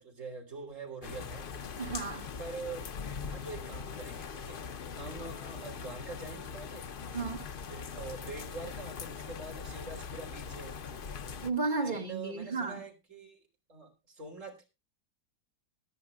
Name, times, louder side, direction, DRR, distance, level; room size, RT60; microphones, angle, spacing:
voice 1, 0.0-1.8 2.4-2.9 3.3-4.6 5.0-6.9 7.7-11.2 11.8-13.4 13.7-14.7, right 4 dB, 45° right, 3.6 m, -45 dB
sound 1, 1.0-11.5, left 6 dB, 65° left, 0.5 m, -41 dB
voice 2, 1.8-2.3 7.1-7.5 11.4-12.8, right 4 dB, 25° right, 2.1 m, -33 dB
22.5 x 10.5 x 2.3 m
omnidirectional pair, 1.8 m